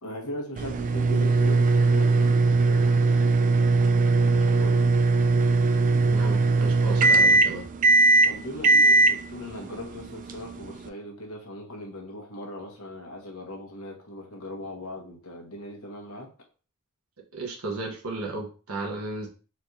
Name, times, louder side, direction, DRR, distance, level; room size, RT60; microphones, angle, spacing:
voice 1, 0.0-3.5 4.2-5.0 8.2-16.3, left 1 dB, 75° left, 1 dB, 1.2 m, -39 dB
sound 1, 0.6-10.9, right 3 dB, 35° right, 0.3 m, -20 dB
voice 2, 6.1-7.7 17.3-19.3, right 2 dB, 80° right, 0 dB, 1.2 m, -34 dB
4.3 x 3.2 x 2.7 m, 0.36 s
head